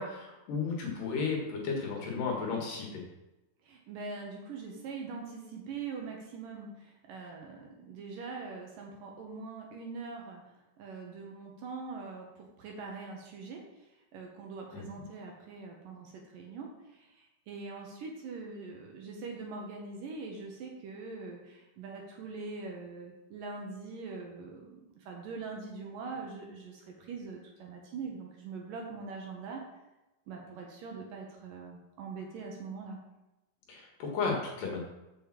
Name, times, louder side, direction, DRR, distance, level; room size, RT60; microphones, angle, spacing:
voice 1, 0.0-3.0 14.7-14.8 33.7-34.8, left 4 dB, 65° left, 0 dB, 2.9 m, -34 dB
voice 2, 3.7-10.4 10.8-13.6 14.1-29.6 30.3-33.0, right 4 dB, 65° right, 0 dB, 2.5 m, -43 dB
6.9 x 5.4 x 7.3 m, 0.98 s
omnidirectional pair, 4.6 m